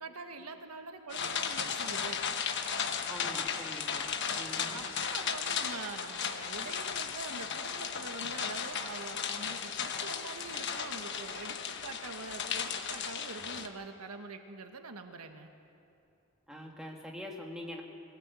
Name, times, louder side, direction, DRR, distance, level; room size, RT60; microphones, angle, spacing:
voice 1, 0.0-2.3 4.7-15.5, right 3 dB, 85° right, 6 dB, 1.4 m, -44 dB
sound 1, 1.1-13.7, left 7 dB, 50° left, 1.2 m, -35 dB
voice 2, 3.1-4.8 16.5-17.8, equal, 5° right, -1 dB, 2.1 m, -44 dB
21.0 x 16.0 x 8.3 m, 2.6 s
head